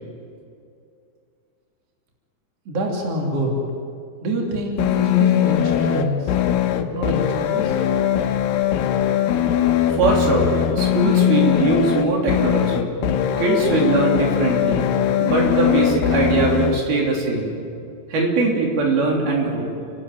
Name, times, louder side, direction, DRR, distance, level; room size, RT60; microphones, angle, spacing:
voice 1, 2.7-3.7 4.2-6.3 6.8-7.7, equal, 40° right, 0 dB, 3.7 m, -26 dB
sound 1, 4.8-16.8, left 10 dB, 75° left, 2.6 m, -20 dB
voice 2, 9.9-12.9 13.4-14.9 15.2-17.6 18.1-19.7, right 3 dB, 75° right, -1 dB, 5.1 m, -21 dB
29.5 x 12.0 x 9.2 m, 2.5 s
omnidirectional pair, 4.4 m